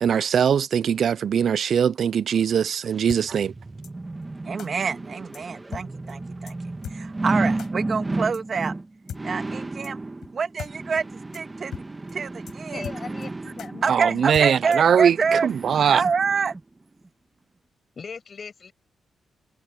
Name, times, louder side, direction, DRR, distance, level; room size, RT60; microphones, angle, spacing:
voice 1, 0.0-3.5 13.9-16.0, right 8 dB, 60° right, 0.3 m, -21 dB
sound 1, 2.7-16.6 17.1-17.2, right 2 dB, 20° right, 2.2 m, -33 dB
sound 2, 3.1-3.2 3.8-3.9 4.6-4.7 5.3-5.4 5.7-5.8 6.1-6.2 6.5-6.6 6.8-7.0 7.6-7.7 8.3-8.4 9.1-9.2 9.8-9.9 10.2-10.3 10.6-10.7 11.0-11.1 11.3-11.4 11.7-11.8 12.1-12.2 12.5-12.6 12.8-13.3 13.6-13.7 14.3-14.9, left 9 dB, 70° left, 6.2 m, -37 dB
voice 2, 4.4-6.5 6.9-8.7 9.2-10.0 10.3-12.8 13.8-15.5 15.9-16.5, right 5 dB, 45° right, 1.6 m, -27 dB
voice 3, 12.7-14.3 18.0-18.7, left 5 dB, 40° left, 5.9 m, -39 dB
cardioid pair, 110°, 0 cm